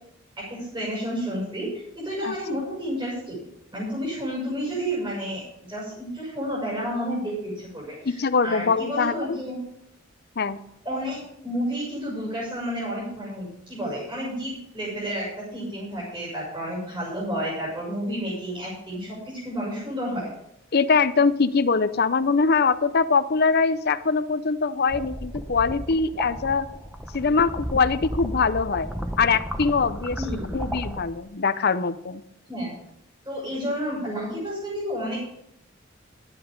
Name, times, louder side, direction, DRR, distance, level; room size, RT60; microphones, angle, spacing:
voice 1, 0.4-1.7 1.9-3.4 3.7-9.6 10.8-20.3 30.2-30.7 32.5-32.8 33.2-35.2, equal, 25° right, -7 dB, 6.5 m, -31 dB
voice 2, 8.0-9.4 10.4-10.6 20.7-26.7 27.1-28.9 29.2-30.2 30.5-32.2, left 4 dB, 55° left, 12 dB, 0.7 m, -22 dB
sound 1, 24.9-31.0, equal, 5° right, 0.9 m, -33 dB
12.0 x 10.5 x 5.3 m, 0.76 s
head